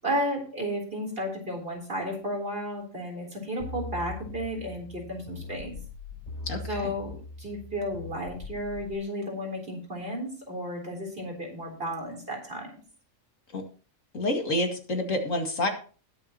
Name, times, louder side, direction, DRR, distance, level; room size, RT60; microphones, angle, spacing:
voice 1, 0.0-5.7 6.7-12.8, equal, 40° right, 0 dB, 4.0 m, -33 dB
sound 1, 3.6-8.9, left 3 dB, 85° left, 5.6 m, -41 dB
voice 2, 6.4-6.9 13.5-13.6 14.1-15.7, left 1 dB, 70° left, 3 dB, 2.5 m, -28 dB
20.0 x 7.0 x 2.9 m, 0.39 s
omnidirectional pair, 1.4 m